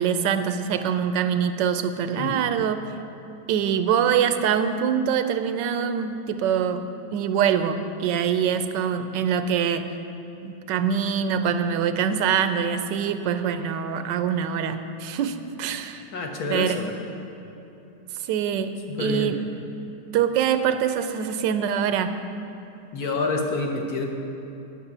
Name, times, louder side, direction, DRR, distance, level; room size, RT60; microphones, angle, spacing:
voice 1, 0.0-2.9 3.5-9.9 10.4-16.0 16.5-16.8 18.3-19.4 20.1-22.2, right 8 dB, 85° right, 10 dB, 1.3 m, -24 dB
voice 2, 2.1-2.4 16.1-16.9 18.9-19.3 22.9-24.1, left 3 dB, 65° left, 2 dB, 1.4 m, -28 dB
9.7 x 6.1 x 8.0 m, 2.9 s
omnidirectional pair, 1.9 m